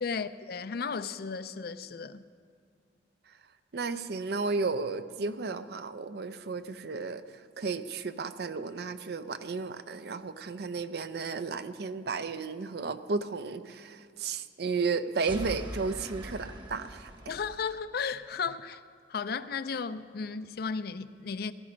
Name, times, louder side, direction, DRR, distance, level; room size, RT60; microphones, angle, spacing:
voice 1, 0.0-2.2 17.3-18.8 19.1-21.5, left 5 dB, 60° left, 0.5 m, -34 dB
voice 2, 3.7-7.2 7.6-17.1, right 4 dB, 65° right, 0.6 m, -33 dB
sound 1, 15.3-17.8, right 1 dB, 25° right, 1.1 m, -42 dB
17.5 x 12.0 x 5.1 m
head